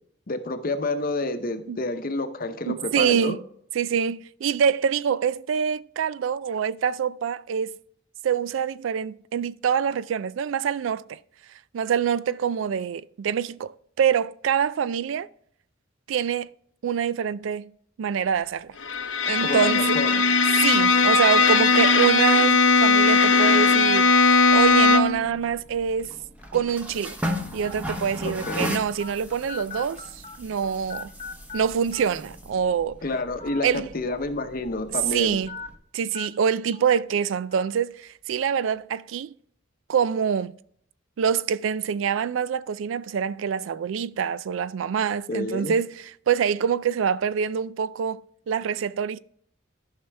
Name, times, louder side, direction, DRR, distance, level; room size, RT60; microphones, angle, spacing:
voice 1, 0.3-3.4 19.4-20.2 28.2-28.7 33.0-35.4 45.3-45.7, left 2 dB, 50° left, 0.7 m, -29 dB
voice 2, 2.7-3.4 3.7-7.8 8.2-11.2 11.7-15.3 16.1-16.5 16.8-17.7 18.0-18.7 19.3-20.0 20.5-24.1 24.5-26.1 26.5-27.2 27.5-30.0 30.4-31.1 31.5-33.0 33.6-33.8 35.1-35.5 35.9-39.3 39.9-40.5 41.2-48.2 48.5-49.2, right 7 dB, 85° right, 0.3 m, -25 dB
Bowed string instrument, 18.8-25.3, left 4 dB, 80° left, 0.8 m, -18 dB
sound 1, 24.5-35.7, left 1 dB, 10° right, 0.9 m, -37 dB
sound 2, 25.5-25.7 26.4-26.5 27.6-27.7 28.4-28.5 29.0-29.1 29.5-30.6 30.9-31.6 31.9-32.0 33.3-33.6 34.0-34.1 35.5-35.7 36.1-36.3 36.7-36.9 37.5-37.6, left 5 dB, 30° left, 1.0 m, -38 dB
13.0 x 5.6 x 3.3 m
head